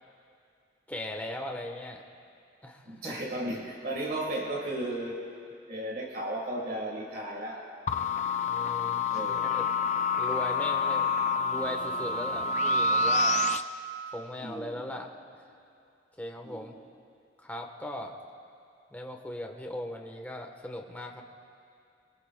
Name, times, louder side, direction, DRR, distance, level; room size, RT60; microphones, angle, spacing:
voice 1, 0.9-2.0 2.6-3.2 8.4-9.7 10.2-11.1 11.4-13.4 14.1-15.1 16.2-16.8 17.4-18.2 18.9-21.2, left 1 dB, 10° left, 1 dB, 1.2 m, -38 dB
voice 2, 2.8-5.2 5.7-7.7 9.1-9.5 14.4-14.9 16.4-16.7, right 1 dB, 55° right, 0 dB, 1.6 m, -35 dB
sound 1, 7.9-13.6, left 3 dB, 40° left, 0.5 m, -27 dB
26.5 x 23.0 x 2.3 m, 2.5 s
head